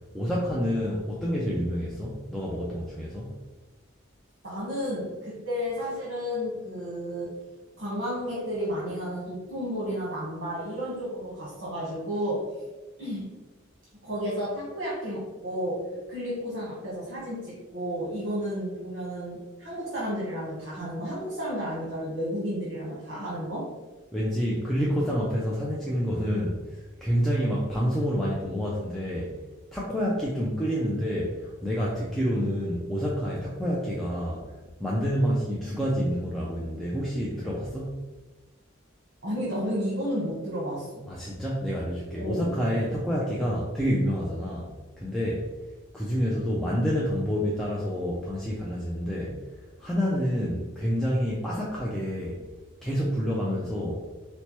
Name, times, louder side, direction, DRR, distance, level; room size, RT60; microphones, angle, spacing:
voice 1, 0.1-3.3 24.1-29.3 29.7-34.4 34.8-38.0 41.1-44.7 45.0-45.5 45.9-49.4 49.8-52.4 52.8-54.1, equal, ahead, -6 dB, 0.3 m, -28 dB
voice 2, 4.4-7.3 7.8-12.5 13.0-13.3 14.0-23.7 39.2-41.1 42.2-42.5, equal, 60° right, -7 dB, 1.1 m, -32 dB
4.2 x 2.2 x 2.9 m, 1.2 s
head